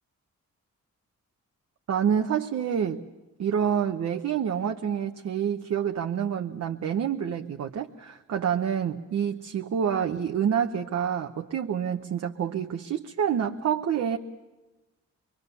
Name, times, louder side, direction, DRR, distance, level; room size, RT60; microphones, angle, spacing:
voice 1, 1.9-3.0 3.4-14.2, right 8 dB, 65° right, 4 dB, 1.0 m, -27 dB
26.5 x 23.0 x 6.9 m, 1.1 s
cardioid pair, 115°, 29 cm